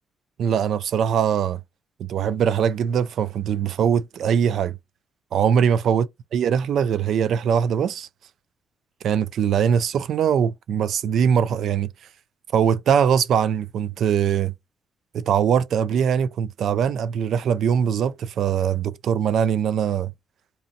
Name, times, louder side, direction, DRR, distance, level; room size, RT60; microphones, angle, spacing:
voice 1, 0.4-1.6 2.0-4.8 5.3-8.1 9.0-11.9 12.5-14.5 15.1-20.1, right 8 dB, 70° right, 0.3 m, -22 dB
2.9 x 2.5 x 2.5 m
cardioid pair, 90°, 0 cm